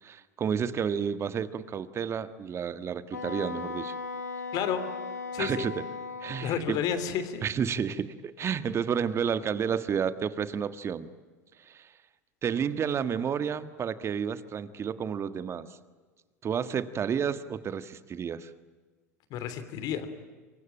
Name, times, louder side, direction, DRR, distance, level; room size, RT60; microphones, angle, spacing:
voice 1, 0.0-3.9 5.4-5.8 6.2-6.8 7.4-11.1 11.7-11.9 12.4-15.8 16.4-18.5, right 7 dB, 30° right, 12 dB, 1.6 m, -31 dB
Wind instrument woodwind instrument, 3.1-6.5, left 4 dB, 85° left, 1.4 m, -37 dB
voice 2, 5.3-5.7 6.4-7.4 19.3-20.1, left 8 dB, 50° left, 11 dB, 3.1 m, -31 dB
26.5 x 23.5 x 9.0 m, 1.4 s
figure-of-eight pair, 80°, 9 cm